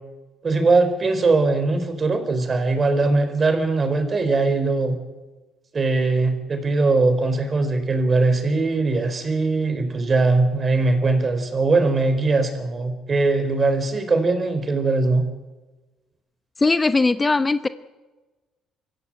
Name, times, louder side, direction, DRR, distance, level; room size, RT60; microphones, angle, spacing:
voice 1, 0.4-5.0 5.7-15.2, right 3 dB, 35° right, 8 dB, 4.3 m, -20 dB
voice 2, 16.6-17.7, left 3 dB, 25° left, 12 dB, 0.9 m, -19 dB
24.5 x 15.0 x 8.9 m, 1.2 s
supercardioid pair, 80°, 0 cm